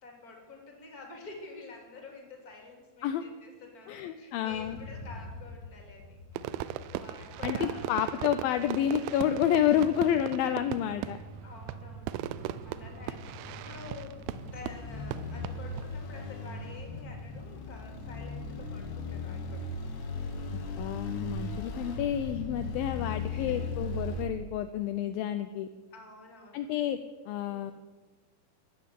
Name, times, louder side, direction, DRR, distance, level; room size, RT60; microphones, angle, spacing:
voice 1, 0.0-6.6 6.9-7.9 11.4-14.2 14.5-19.7 23.3-23.7 25.9-26.7 27.5-27.7, left 3 dB, 25° left, 1 dB, 3.0 m, -49 dB
voice 2, 3.9-4.8 7.4-11.2 20.8-25.7 26.5-27.0 27.3-27.7, left 10 dB, 80° left, 9 dB, 2.3 m, -29 dB
sound 1, 4.4-24.2, left 2 dB, 55° left, 2.5 m, -39 dB
Fireworks, 6.4-15.9, right 13 dB, 80° right, 2.3 m, -38 dB
13.0 x 11.0 x 8.5 m, 1.3 s
omnidirectional pair, 4.5 m